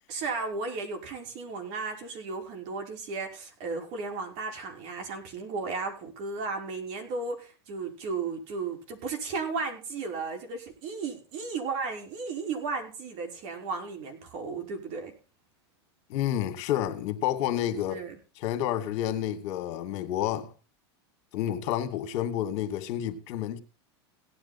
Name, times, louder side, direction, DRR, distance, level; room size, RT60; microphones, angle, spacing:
voice 1, 0.1-15.1 17.9-18.2, right 4 dB, 55° right, 5.5 m, -34 dB
voice 2, 16.1-18.0 18.4-20.5 21.3-23.6, left 11 dB, 55° left, 2.3 m, -29 dB
17.0 x 10.0 x 4.3 m
supercardioid pair, 115°, 14 cm